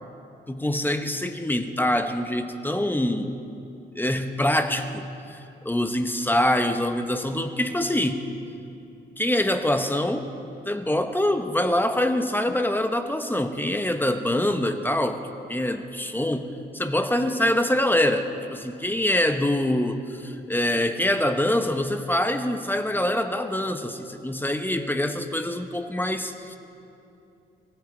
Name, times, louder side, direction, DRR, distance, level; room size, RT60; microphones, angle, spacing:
voice 1, 0.5-3.4 3.9-5.4 5.6-8.2 9.2-10.3 10.6-15.2 15.5-16.5 16.7-26.6, left 1 dB, 10° left, 7 dB, 1.1 m, -25 dB
24.0 x 15.0 x 4.0 m, 2.8 s
cardioid pair, 75°, 20 cm